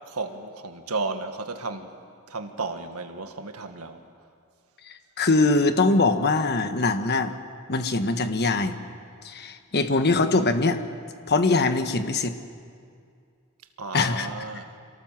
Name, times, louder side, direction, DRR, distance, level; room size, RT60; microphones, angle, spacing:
voice 1, 0.1-1.9 2.3-4.0 13.8-14.7, right 3 dB, 85° right, 1.8 m, -33 dB
voice 2, 4.9-7.3 7.7-8.8 9.2-10.8 11.3-12.3 13.9-14.3, left 3 dB, 50° left, 1.3 m, -22 dB
27.5 x 18.5 x 7.5 m
head